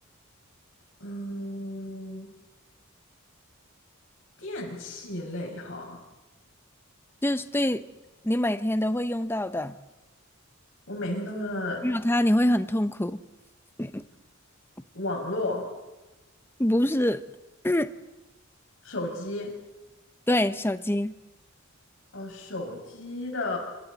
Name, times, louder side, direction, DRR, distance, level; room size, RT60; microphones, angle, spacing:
voice 1, 1.0-2.3 4.4-6.0 10.9-11.8 14.9-15.7 18.8-19.5 22.1-23.6, left 1 dB, 65° left, 0 dB, 6.2 m, -33 dB
voice 2, 7.2-7.8 8.2-9.8 11.8-13.2 13.8-14.0 16.6-17.2 17.6-17.9 20.3-21.1, left 1 dB, 10° left, 12 dB, 0.8 m, -25 dB
28.0 x 26.5 x 4.1 m, 1.1 s
head